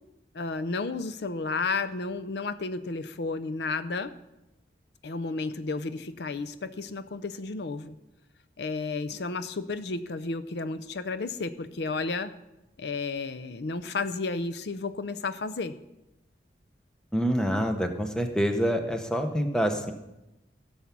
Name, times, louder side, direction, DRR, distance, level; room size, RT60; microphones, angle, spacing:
voice 1, 0.3-4.1 5.0-8.0 8.6-12.3 12.8-15.7, left 3 dB, 65° left, 12 dB, 0.5 m, -32 dB
voice 2, 17.1-19.9, equal, 5° left, 5 dB, 0.9 m, -26 dB
15.5 x 7.1 x 6.0 m, 0.95 s
head